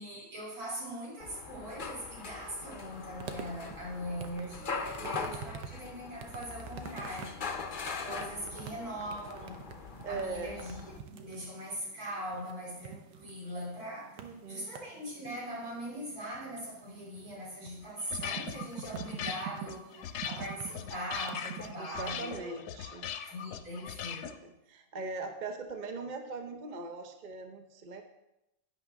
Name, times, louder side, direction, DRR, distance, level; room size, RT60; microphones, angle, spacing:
voice 1, 0.0-7.3 8.0-9.6 10.0-14.2 14.5-19.9 20.2-22.6 23.3-24.3, equal, 60° right, -4 dB, 3.4 m, -41 dB
sound 1, 1.2-11.0, left 5 dB, 45° left, 0.7 m, -41 dB
sound 2, 2.9-21.7, right 7 dB, 85° right, 1.5 m, -47 dB
voice 2, 5.0-5.6 8.4-8.7 10.0-10.7 14.2-14.7 21.8-23.1 24.4-28.0, right 3 dB, 45° right, 5 dB, 0.6 m, -41 dB
sound 3, 17.8-24.4, left 8 dB, 70° left, 1.1 m, -40 dB
11.0 x 9.3 x 3.5 m, 0.90 s
omnidirectional pair, 1.8 m